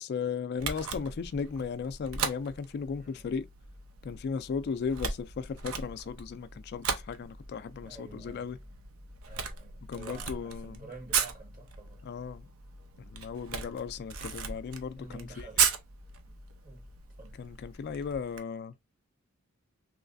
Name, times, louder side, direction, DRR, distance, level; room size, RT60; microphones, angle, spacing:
voice 1, 0.0-3.5 4.0-8.6 9.9-10.9 12.0-12.4 13.0-15.7 17.4-18.7, left 6 dB, 50° left, 0.3 m, -36 dB
Camera, 0.6-18.4, right 6 dB, 75° right, 0.6 m, -37 dB
sound 1, 3.3-18.2, left 1 dB, 15° right, 0.4 m, -53 dB
voice 2, 7.8-8.5 9.3-12.0 13.6-13.8 15.0-15.6 16.6-16.8 17.2-17.4, right 2 dB, 40° right, 1.6 m, -49 dB
3.2 x 3.1 x 2.5 m
head